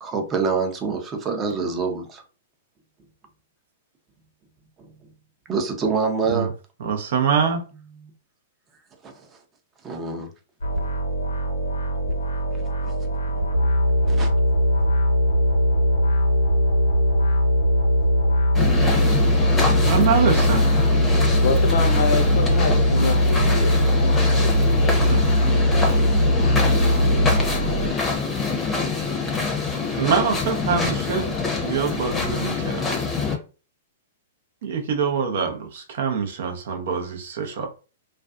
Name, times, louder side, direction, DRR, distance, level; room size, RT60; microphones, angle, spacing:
voice 1, 0.0-2.2 5.5-6.5 8.0-8.1 9.0-9.3 9.8-10.3 12.8-12.9 14.0-14.3 24.0-24.1, right 5 dB, 25° right, 0.6 m, -26 dB
voice 2, 6.8-7.7 19.8-20.7 25.1-25.6 30.0-31.3 31.6-32.8 34.6-37.7, right 6 dB, 65° right, 0.6 m, -24 dB
sound 1, 10.6-27.9, equal, 90° left, 0.9 m, -20 dB
sound 2, 18.5-33.3, left 4 dB, 15° left, 0.7 m, -25 dB
voice 3, 21.4-23.9 24.4-25.1, left 5 dB, 60° left, 0.6 m, -27 dB
2.4 x 2.3 x 2.4 m
hypercardioid pair, 120°, 0 cm